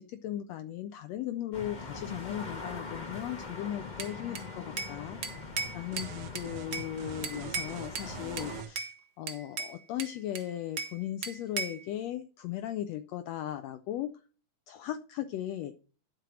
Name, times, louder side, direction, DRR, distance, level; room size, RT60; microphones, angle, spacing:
voice 1, 0.0-5.2 5.7-14.2 14.7-15.7, left 12 dB, 75° left, 10 dB, 1.7 m, -37 dB
sound 1, 1.5-8.6, left 4 dB, 30° left, 0.8 m, -42 dB
Bell / Glass, 4.0-5.0 5.2-6.9 7.2-8.1 8.4-8.9 9.3-11.0 11.2-11.8, right 5 dB, 60° right, 1.0 m, -37 dB
sound 2, 5.9-8.7, right 11 dB, 85° right, 2.2 m, -45 dB
12.0 x 4.5 x 6.0 m, 0.37 s
omnidirectional pair, 3.3 m